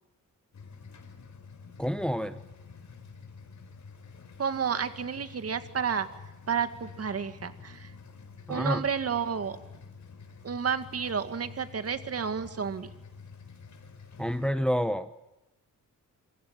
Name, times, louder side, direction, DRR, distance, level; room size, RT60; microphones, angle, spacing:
sound 1, 0.5-14.5, left 5 dB, 55° left, 4.8 m, -49 dB
voice 1, 1.8-2.4 8.5-8.8 14.2-15.3, equal, 5° left, 11 dB, 1.0 m, -29 dB
voice 2, 4.4-6.1 6.5-7.9 8.5-9.6 10.4-12.9, right 6 dB, 45° right, 10 dB, 2.1 m, -31 dB
27.0 x 25.5 x 7.6 m, 0.98 s
wide cardioid pair, 130°, 33 cm